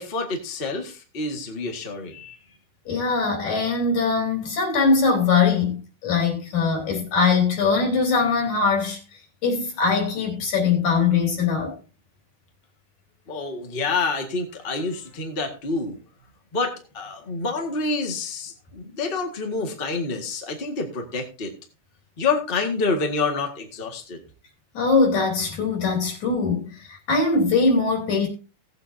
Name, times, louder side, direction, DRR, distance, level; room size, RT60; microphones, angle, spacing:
voice 1, 0.0-2.4 13.3-15.9 16.5-21.5 22.2-24.2, left 3 dB, 25° left, 1.3 m, -28 dB
voice 2, 2.9-9.0 9.4-11.8 24.7-28.3, left 4 dB, 65° left, 4.5 m, -21 dB
18.0 x 8.1 x 2.7 m
omnidirectional pair, 3.7 m